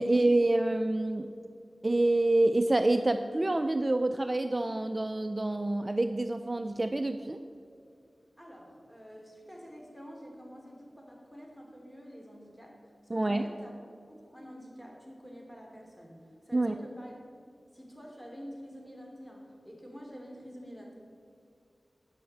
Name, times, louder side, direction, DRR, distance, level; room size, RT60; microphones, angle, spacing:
voice 1, 0.0-1.3 1.8-7.4 13.1-13.5 16.5-16.8, right 2 dB, 35° right, 8 dB, 0.4 m, -27 dB
voice 2, 8.4-13.8 14.1-17.2 17.7-20.9, equal, 5° left, -1 dB, 2.8 m, -48 dB
9.7 x 5.8 x 7.3 m, 2.4 s
cardioid pair, 40°, 0 cm